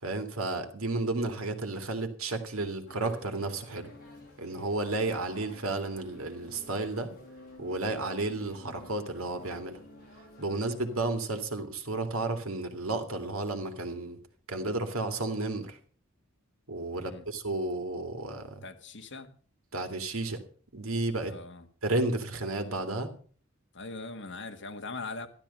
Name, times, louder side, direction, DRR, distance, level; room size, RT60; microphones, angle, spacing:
voice 1, 0.0-3.9 4.4-7.1 7.6-9.8 10.4-14.2 14.5-15.8 16.7-18.6 19.7-20.4 20.7-21.4 21.8-23.1, right 2 dB, 85° right, 2.4 m, -32 dB
sound 1, 2.9-11.2, left 2 dB, 45° left, 6.1 m, -51 dB
voice 2, 16.9-17.3 18.6-19.3 21.2-21.7 23.7-25.3, left 3 dB, 60° left, 1.7 m, -41 dB
14.0 x 12.5 x 5.5 m
head